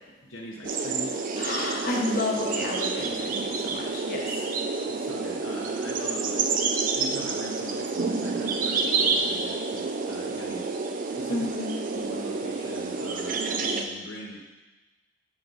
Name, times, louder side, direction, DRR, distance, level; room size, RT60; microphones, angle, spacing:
voice 1, 0.2-1.1 4.9-6.5 6.9-10.7 11.2-11.5 12.0-14.4, equal, 70° left, -3 dB, 0.7 m, -41 dB
sound 1, 0.6-13.8, right 4 dB, 40° right, 0.4 m, -29 dB
voice 2, 1.4-4.4 11.3-11.8, left 2 dB, 45° left, -1 dB, 1.0 m, -30 dB
6.4 x 4.6 x 3.9 m, 1.2 s
head